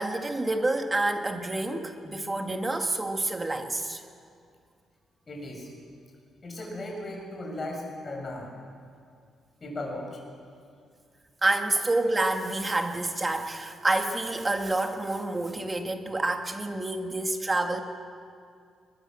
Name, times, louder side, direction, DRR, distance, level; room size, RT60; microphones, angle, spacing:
voice 1, 0.0-4.0 11.4-17.8, right 2 dB, 20° right, 5 dB, 1.7 m, -28 dB
voice 2, 5.3-5.7 6.4-8.5 9.6-10.2, left 1 dB, 25° left, -1 dB, 6.5 m, -36 dB
22.0 x 20.5 x 7.5 m, 2.3 s
cardioid pair, 145°, 0 cm